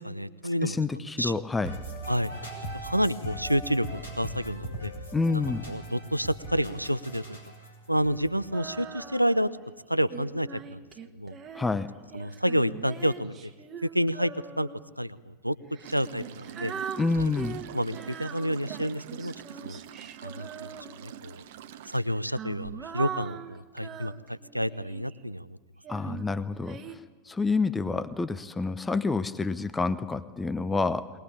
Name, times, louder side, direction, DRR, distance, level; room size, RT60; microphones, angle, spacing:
voice 1, 0.0-0.8 1.2-1.3 2.1-2.3 2.8-4.9 5.3-5.4 5.7-7.4 7.9-9.5 9.9-10.8 11.1-11.4 12.1-13.5 13.8-14.7 15.0-15.6 15.9-16.7 17.1-17.3 17.7-19.3 19.6-19.8 20.2-20.7 21.0-21.4 21.9-25.6 26.1-26.3, equal, 90° right, 15 dB, 0.6 m, -29 dB
voice 2, 0.6-1.8 5.1-5.7 11.5-11.9 17.0-17.6 25.9-27.0 27.3-31.1, left 3 dB, 10° left, 14 dB, 0.8 m, -28 dB
sound 1, 1.6-9.5, right 1 dB, 85° left, 5.2 m, -40 dB
Female singing, 8.5-9.6 10.1-14.9 15.7-21.3 22.0-25.2 25.8-27.0, right 6 dB, 25° right, 1.4 m, -41 dB
sound 2, 15.8-22.0, right 10 dB, 55° right, 1.0 m, -45 dB
21.5 x 20.0 x 8.6 m, 1.4 s
figure-of-eight pair, 90°, 0 cm